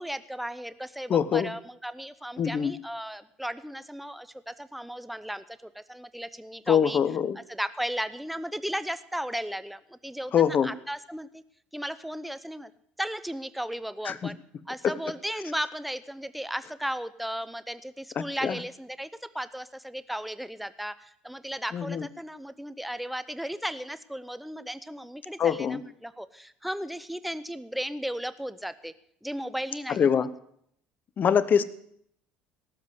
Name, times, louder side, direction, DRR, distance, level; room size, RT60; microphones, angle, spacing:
voice 1, 0.0-7.0 7.5-11.4 11.7-12.7 13.0-14.4 14.7-19.1 19.3-28.9 29.2-30.3, equal, ahead, 14 dB, 0.8 m, -35 dB
voice 2, 1.1-1.5 2.4-2.7 6.7-7.4 10.3-10.7 14.0-14.3 14.8-14.9 18.2-18.6 21.7-22.1 25.4-25.8 29.9-30.3 31.2-31.6, left 8 dB, 45° left, 15 dB, 1.0 m, -24 dB
18.0 x 7.5 x 8.0 m, 0.70 s
hypercardioid pair, 70°, 4 cm